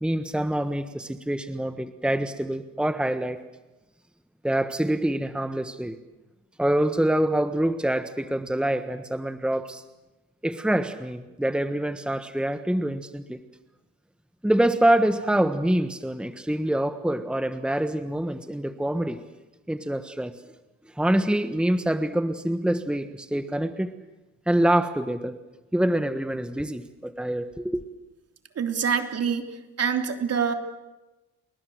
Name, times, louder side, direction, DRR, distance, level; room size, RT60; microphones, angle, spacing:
voice 1, 0.0-3.4 4.4-5.9 6.6-9.8 10.4-13.4 14.4-19.2 19.7-20.3 21.0-23.9 24.5-25.4 25.7-27.8, right 1 dB, 5° right, 9 dB, 1.4 m, -25 dB
voice 2, 28.5-29.5 29.8-30.5, right 6 dB, 55° right, 6 dB, 3.3 m, -25 dB
30.0 x 20.5 x 7.9 m, 1.1 s
cardioid pair, 90°, 30 cm